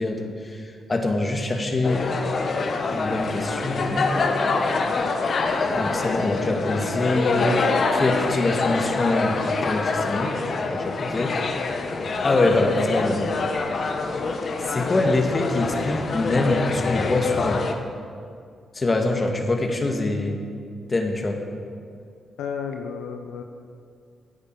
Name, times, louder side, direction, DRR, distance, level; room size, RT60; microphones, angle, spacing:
voice 1, 0.0-2.1 2.9-4.1 5.7-7.6 7.9-10.4 10.7-11.4 12.2-13.3 14.6-17.6 18.7-20.4 20.9-21.4, left 2 dB, 35° left, 3 dB, 1.9 m, -24 dB
sound 1, 1.8-17.7, left 3 dB, 55° left, 1.2 m, -25 dB
voice 2, 22.4-23.4, left 6 dB, 85° left, 5 dB, 0.7 m, -32 dB
16.0 x 10.0 x 4.8 m, 2.3 s
supercardioid pair, 55°, 0 cm